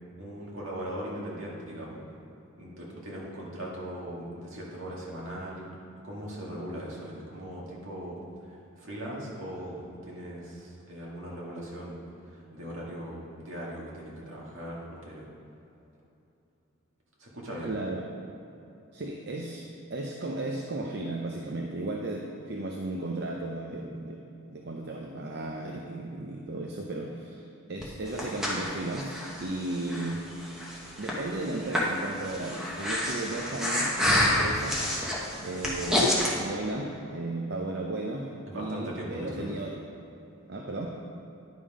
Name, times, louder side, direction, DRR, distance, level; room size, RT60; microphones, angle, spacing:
voice 1, 0.2-2.1 2.6-5.7 6.0-8.2 8.8-12.0 12.5-15.3 17.2-17.7 38.5-39.5, equal, 70° right, -4 dB, 2.0 m, -39 dB
voice 2, 17.6-18.1 18.9-24.2 24.5-30.2 31.0-35.0 35.4-39.8 40.5-41.0, right 2 dB, 50° right, 0 dB, 0.6 m, -35 dB
Breathing, 27.8-36.3, left 1 dB, ahead, 1.1 m, -29 dB
10.0 x 5.5 x 4.9 m, 2.9 s
head